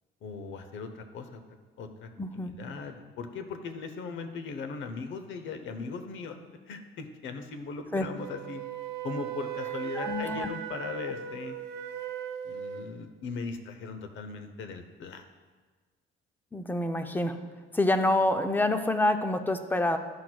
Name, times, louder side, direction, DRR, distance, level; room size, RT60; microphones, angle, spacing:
voice 1, 0.2-1.4 1.8-6.4 6.7-8.6 9.0-11.6 12.4-15.3, left 4 dB, 65° left, 8 dB, 0.8 m, -39 dB
voice 2, 2.2-2.5 7.9-8.1 10.0-10.5 16.5-17.4 17.7-20.0, left 1 dB, 10° left, 7 dB, 0.5 m, -27 dB
Wind instrument woodwind instrument, 8.2-12.9, right 9 dB, 55° right, 0.6 m, -37 dB
11.5 x 6.0 x 2.3 m, 1.4 s
cardioid pair, 110°, 21 cm